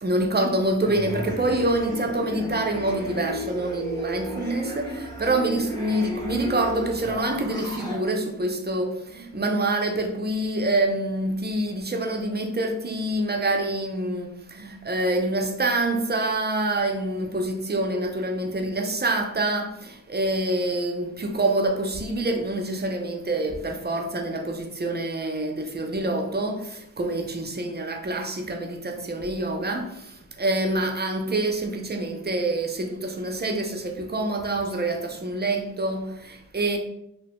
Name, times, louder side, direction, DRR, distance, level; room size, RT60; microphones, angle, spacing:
voice 1, 0.0-36.8, right 2 dB, 30° right, 0.4 m, -26 dB
sound 1, 0.8-8.0, equal, 10° left, 0.8 m, -34 dB
2.8 x 2.0 x 2.9 m
wide cardioid pair, 45°, 33 cm